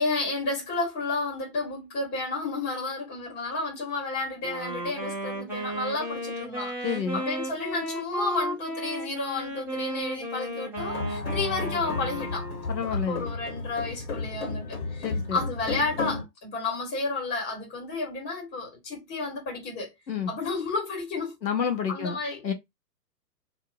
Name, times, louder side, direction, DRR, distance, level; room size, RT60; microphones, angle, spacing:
voice 1, 0.0-6.7 7.1-12.5 12.9-14.7 14.9-19.9 20.3-21.4 21.9-22.4, left 3 dB, 20° left, 1.8 m, -31 dB
Wind instrument woodwind instrument, 4.4-13.1, right 1 dB, 5° right, 0.7 m, -34 dB
voice 2, 6.8-7.2 12.7-13.3 15.0-15.4 20.1-20.3 21.4-22.2 22.4-22.5, left 7 dB, 90° left, 1.1 m, -29 dB
sound 1, 10.8-16.2, left 3 dB, 60° left, 1.4 m, -33 dB
3.0 x 2.7 x 2.6 m
figure-of-eight pair, 125°, 50 cm